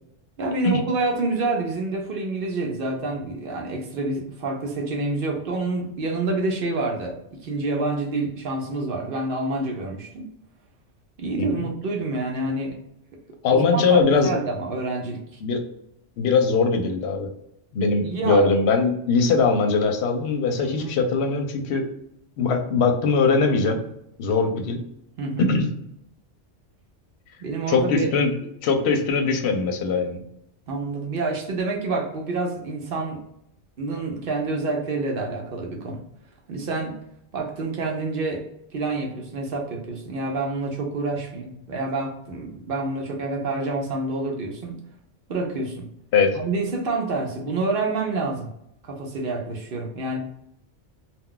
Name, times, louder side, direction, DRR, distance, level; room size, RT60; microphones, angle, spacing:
voice 1, 0.4-10.3 11.2-12.8 13.5-15.4 18.0-18.5 20.6-21.0 25.2-25.5 27.4-28.1 30.7-33.2 33.8-36.0 36.5-36.9 37.3-38.4 38.7-44.8 45.3-45.9 46.4-48.5 48.8-50.2, right 3 dB, 60° right, 1 dB, 0.7 m, -27 dB
voice 2, 13.4-14.3 15.4-15.6 16.2-17.3 17.7-21.9 22.4-23.8 24.2-24.8 25.4-25.7 27.7-28.3 28.6-30.2 46.1-46.4, left 4 dB, 70° left, 4 dB, 0.8 m, -21 dB
2.3 x 2.2 x 3.7 m, 0.76 s
omnidirectional pair, 1.2 m